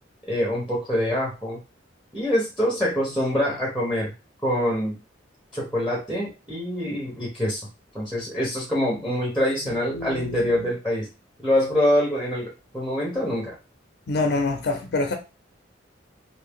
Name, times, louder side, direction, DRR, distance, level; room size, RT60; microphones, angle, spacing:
voice 1, 0.3-1.6 2.1-4.1 4.4-5.0 5.5-7.6 7.9-11.1 11.4-13.5, equal, 5° right, 0.8 m, -25 dB
voice 2, 9.7-10.7 14.1-15.1, left 3 dB, 60° left, 0.5 m, -27 dB
2.7 x 2.6 x 3.5 m
head